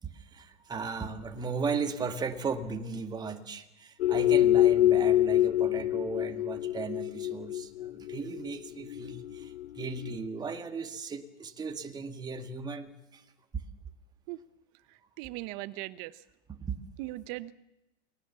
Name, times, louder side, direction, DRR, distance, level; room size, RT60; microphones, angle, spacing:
voice 1, 0.0-13.2 16.5-16.8, right 5 dB, 10° right, 6 dB, 1.9 m, -36 dB
sound 1, 4.0-10.2, left 13 dB, 80° left, 0.8 m, -26 dB
voice 2, 15.2-16.2 17.0-17.5, right 19 dB, 40° right, 15 dB, 1.2 m, -38 dB
29.5 x 20.0 x 7.0 m, 0.93 s
supercardioid pair, 145°, 33 cm